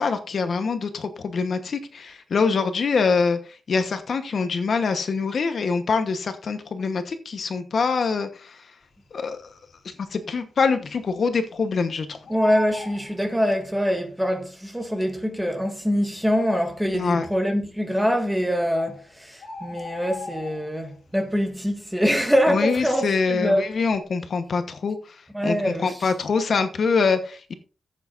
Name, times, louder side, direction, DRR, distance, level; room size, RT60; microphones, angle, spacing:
voice 1, 0.0-8.7 9.1-9.5 9.8-12.2 16.9-17.3 22.5-27.5, left 5 dB, 55° left, 1.1 m, -24 dB
Bird, 9.4-9.9 10.3-10.4 10.6-11.8 12.1-13.9 14.8-14.9 15.5-15.6 15.8-15.9 16.6-17.0 18.0-18.1 18.4-18.5 18.8-21.0 21.4-21.7 22.0-23.4 23.7-24.0, left 1 dB, 80° left, 2.9 m, -37 dB
voice 2, 12.3-23.6 25.3-25.9, equal, 5° right, 1.7 m, -24 dB
15.0 x 8.4 x 2.6 m
wide cardioid pair, 145°, 0 cm